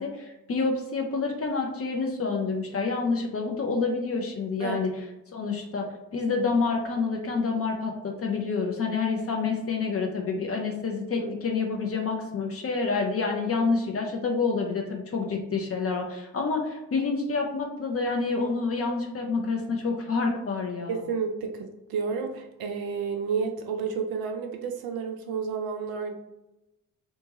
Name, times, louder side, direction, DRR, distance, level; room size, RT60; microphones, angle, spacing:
voice 1, 0.0-4.9 5.3-5.9 6.1-21.0, left 4 dB, 30° left, 2 dB, 0.6 m, -28 dB
voice 2, 20.9-26.1, right 5 dB, 50° right, 4 dB, 0.5 m, -31 dB
2.9 x 2.2 x 2.9 m, 0.98 s
figure-of-eight pair, 40°, 49 cm